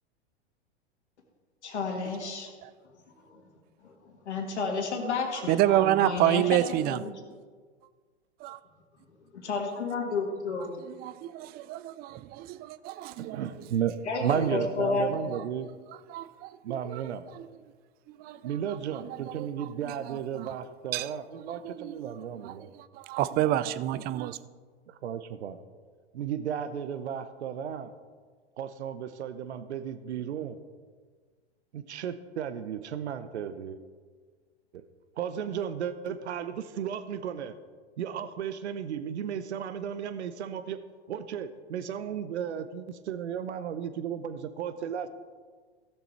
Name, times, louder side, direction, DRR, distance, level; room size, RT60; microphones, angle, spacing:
voice 1, 1.6-2.5 4.3-6.6 6.9-7.1 9.5-10.7 14.1-14.2 14.5-15.3, left 4 dB, 85° left, 2.1 m, -31 dB
voice 2, 5.3-7.1 8.4-8.6 10.9-13.4 16.1-17.0 17.3-17.5 18.1-18.4 19.4-19.5 20.1-20.5 20.9-21.1 21.6-22.1 22.4-22.5 22.9-24.4, right 13 dB, 30° right, 0.4 m, -29 dB
voice 3, 13.2-13.9 14.2-15.7 16.6-17.3 18.4-22.7 24.9-25.6 26.1-27.9 28.6-30.6 31.7-33.8 34.7-34.8 35.2-37.5 38.0-40.8 41.1-45.1, right 8 dB, 80° right, 0.8 m, -34 dB
16.0 x 7.0 x 4.4 m
hypercardioid pair, 110°, 33 cm